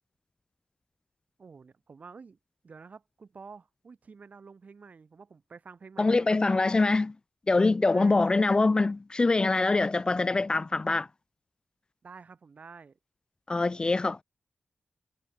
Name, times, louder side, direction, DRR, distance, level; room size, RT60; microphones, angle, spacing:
voice 1, 1.4-2.4 2.6-6.8 7.9-8.3 12.0-13.0, right 5 dB, 50° right, 1.4 m, -49 dB
voice 2, 6.0-7.1 7.5-11.1 13.5-14.2, left 3 dB, 25° left, 0.3 m, -24 dB
wide cardioid pair, 140°, 3 cm